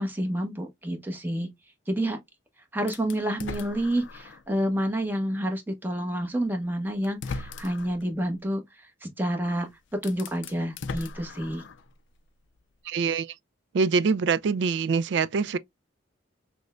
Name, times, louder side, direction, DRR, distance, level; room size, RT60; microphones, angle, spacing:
voice 1, 0.0-1.5 1.9-2.2 2.7-9.7 10.0-11.6, right 1 dB, 10° right, 0.9 m, -29 dB
sound 1, 2.9-4.5 5.0-5.1 6.4-6.5 7.0-8.0 9.4-9.5 9.9-11.9, left 4 dB, 70° left, 0.4 m, -38 dB
voice 2, 12.9-13.3 13.7-15.6, right 5 dB, 65° right, 0.3 m, -24 dB
6.0 x 2.1 x 2.4 m
head